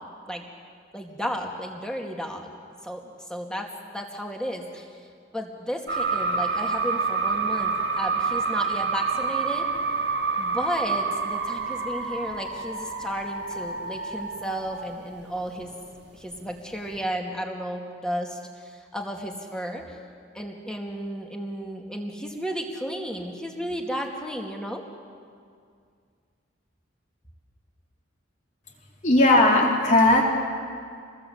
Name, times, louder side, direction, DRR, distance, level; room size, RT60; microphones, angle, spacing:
voice 1, 0.9-2.5 2.8-3.7 3.9-4.9 5.3-9.7 10.4-15.7 16.1-20.0 20.3-24.8, equal, 5° left, 1 dB, 2.4 m, -33 dB
sound 1, 5.9-15.4 15.7-16.5 16.7-17.0, right 4 dB, 60° right, 2.2 m, -28 dB
voice 2, 29.0-30.3, left 2 dB, 40° left, -1 dB, 4.0 m, -17 dB
27.5 x 20.5 x 8.1 m, 2.2 s
head